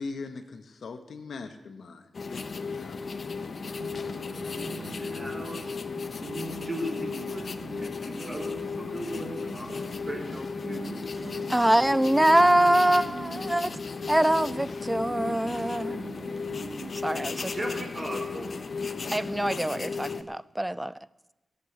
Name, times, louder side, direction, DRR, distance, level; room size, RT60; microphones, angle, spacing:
voice 1, 0.0-3.0, left 4 dB, 80° left, 7 dB, 1.4 m, -40 dB
sound 1, 2.1-20.2, left 4 dB, 55° left, 0.9 m, -35 dB
sound 2, 3.6-16.9, right 3 dB, 90° right, 1.5 m, -43 dB
voice 2, 4.1-5.8 6.3-11.0 17.2-18.7, right 1 dB, 30° right, 1 dB, 3.9 m, -39 dB
voice 3, 11.5-13.7 14.1-16.0 16.9-17.5 19.1-20.9, right 1 dB, 10° right, 19 dB, 0.4 m, -24 dB
16.5 x 8.0 x 8.1 m, 1.0 s
wide cardioid pair, 90°, 0 cm